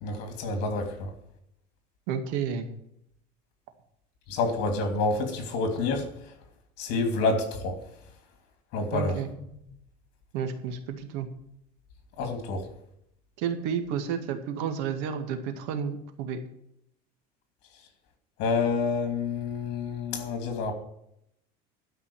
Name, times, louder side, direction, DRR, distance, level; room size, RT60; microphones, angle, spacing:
voice 1, 0.0-1.1 4.3-6.1 6.8-7.8 8.7-9.1 12.2-12.6 18.4-20.7, left 3 dB, 65° left, 6 dB, 3.0 m, -28 dB
voice 2, 2.1-2.7 8.9-9.3 10.3-11.3 13.4-16.4, right 7 dB, 75° right, 7 dB, 2.0 m, -31 dB
12.5 x 5.6 x 8.7 m, 0.77 s
cardioid pair, 140°, 19 cm